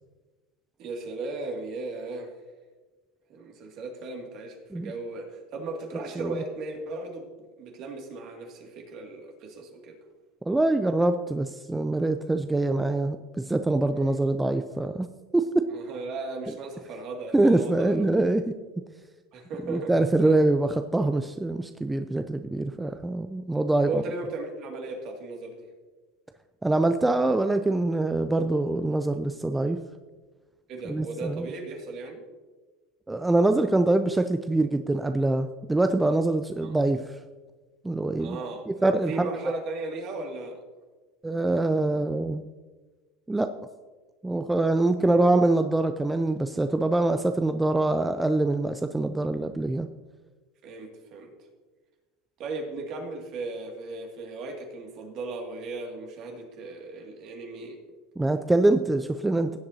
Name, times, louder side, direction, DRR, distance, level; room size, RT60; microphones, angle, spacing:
voice 1, 0.8-2.3 3.3-7.2 7.6-10.0 14.0-14.1 15.7-18.1 19.3-19.9 20.2-20.4 23.8-25.7 30.7-32.2 36.6-36.7 38.2-38.7 39.1-40.6 45.0-45.2 50.6-51.3 52.4-57.8, right 3 dB, 55° right, 2 dB, 2.3 m, -36 dB
voice 2, 10.5-15.7 17.3-18.5 19.7-24.0 26.6-29.8 30.9-31.5 33.1-37.1 37.8-38.4 38.7-39.3 41.2-42.4 43.3-43.5 44.2-49.9 58.2-59.6, right 2 dB, 10° right, 8 dB, 0.4 m, -24 dB
16.5 x 7.7 x 2.8 m, 1.3 s
supercardioid pair, 105°, 0 cm